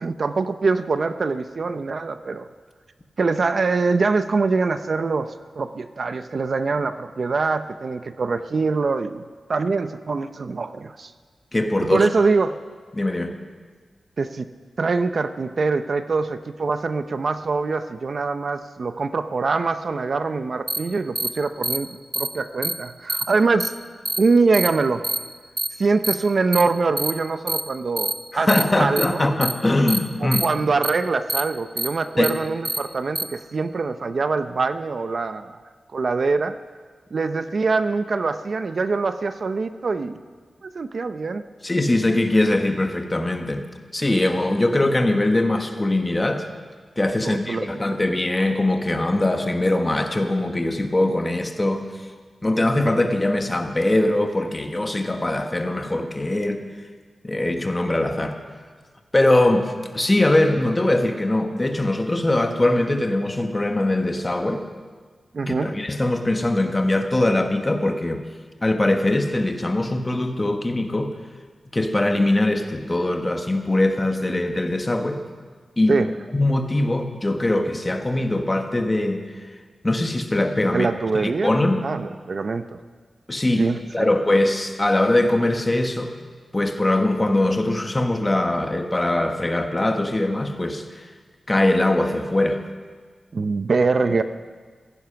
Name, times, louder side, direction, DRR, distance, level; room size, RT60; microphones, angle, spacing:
voice 1, 0.0-2.5 3.2-9.2 9.5-11.1 11.8-12.6 14.2-14.4 14.8-21.9 22.2-23.7 24.2-25.1 25.8-28.5 28.8-29.2 30.2-35.5 35.9-36.6 37.1-40.2 40.6-41.4 47.2-48.0 65.3-65.7 75.9-76.1 80.6-81.5 81.8-82.8 83.6-84.1 93.3-94.2, right 4 dB, 50° right, 10 dB, 0.6 m, -23 dB
voice 2, 11.5-12.1 12.9-13.4 28.3-30.4 32.2-32.3 41.6-43.7 43.9-46.5 47.0-52.0 52.4-56.6 57.2-58.4 59.1-64.6 65.5-68.2 68.6-71.1 71.7-75.2 75.8-76.0 76.3-79.6 79.8-80.9 81.1-81.8 83.3-86.1 86.5-91.1 91.5-92.6, left 1 dB, 20° left, 5 dB, 1.2 m, -22 dB
sound 1, 20.7-20.8 21.2-21.3 21.6-21.8 22.1-22.3 22.6-22.7 23.1-23.2 23.6-23.7 24.1-24.2 24.5-24.7 25.0-25.2 25.6-25.7 26.0-26.1 26.5-26.6 27.0-27.1 27.5-27.6 28.0-28.1 28.5-28.6 29.0-29.1 29.4-29.5 29.9-30.0 30.3-30.5 30.8-30.9 31.3-31.4 31.8-31.9 32.2-32.3 32.6-32.8 33.2-33.3, right 1 dB, 15° right, 0.8 m, -25 dB
16.0 x 15.0 x 5.8 m, 1.5 s
wide cardioid pair, 155°, 0 cm